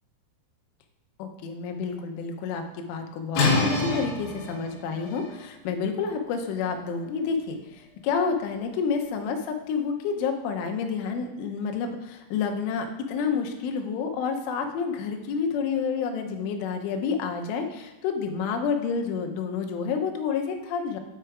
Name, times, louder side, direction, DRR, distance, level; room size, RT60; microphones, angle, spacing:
voice 1, 1.2-3.5 3.8-21.0, left 6 dB, 80° left, 4 dB, 3.3 m, -29 dB
sound 1, 3.3-9.0, left 3 dB, 60° left, 2.5 m, -30 dB
8.9 x 4.8 x 4.5 m, 1.1 s
omnidirectional pair, 5.7 m